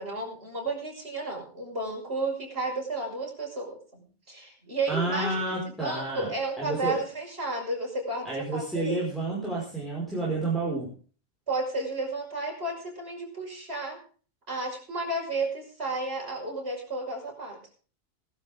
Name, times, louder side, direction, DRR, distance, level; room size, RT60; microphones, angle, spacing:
voice 1, 0.0-9.0 11.5-14.0 14.5-17.6, right 2 dB, 50° right, -1 dB, 6.2 m, -32 dB
voice 2, 4.9-6.3 6.6-7.0 8.2-10.9, right 2 dB, ahead, -5 dB, 5.4 m, -30 dB
19.5 x 12.0 x 3.7 m, 0.39 s
omnidirectional pair, 1.3 m